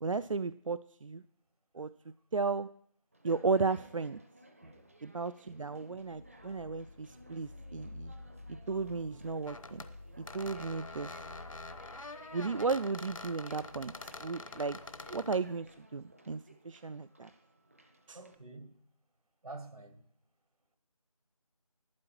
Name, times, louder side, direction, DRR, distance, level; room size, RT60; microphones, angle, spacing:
voice 1, 0.0-1.2 1.7-1.9 2.3-2.7 3.2-4.2 5.0-8.1 8.7-9.8 10.2-11.1 12.3-13.9 14.2-14.8 15.1-17.3 18.1-18.2, right 4 dB, 60° right, 0.4 m, -34 dB
Conversation, 3.1-18.3, right 1 dB, 25° right, 0.6 m, -58 dB
sound 1, 6.0-15.8, left 2 dB, 40° left, 0.5 m, -53 dB
sound 2, 9.4-9.9 10.3-15.4, left 3 dB, 60° left, 1.0 m, -46 dB
voice 2, 18.1-18.8 19.4-20.0, right 2 dB, 80° right, 1.8 m, -48 dB
12.0 x 9.3 x 4.4 m
figure-of-eight pair, 170°, 19 cm